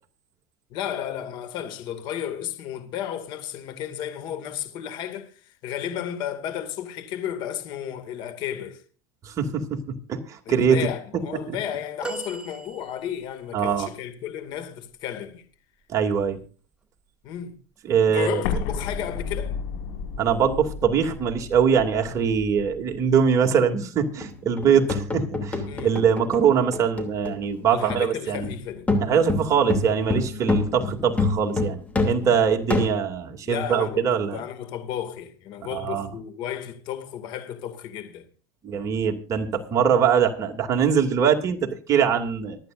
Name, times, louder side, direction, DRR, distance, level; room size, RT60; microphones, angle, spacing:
voice 1, 0.7-8.8 10.5-15.4 17.2-17.6 18.1-19.6 25.7-26.0 27.7-28.9 33.4-38.3, left 10 dB, 55° left, 2.3 m, -33 dB
voice 2, 9.2-9.8 10.1-10.9 11.5-11.6 13.5-13.9 15.9-16.4 17.8-18.4 20.2-28.5 29.0-34.4 35.7-36.1 38.6-42.6, right 7 dB, 35° right, 2.6 m, -22 dB
sound 1, 12.0-13.4 15.8-16.0 17.3-17.4, right 4 dB, 10° right, 1.3 m, -37 dB
Explosion, 18.4-23.2, left 5 dB, 75° left, 5.4 m, -33 dB
sound 2, 24.0-27.6 27.9-28.1 28.4-33.0, left 2 dB, 15° left, 2.8 m, -27 dB
24.5 x 9.1 x 2.6 m
supercardioid pair, 125°, 9 cm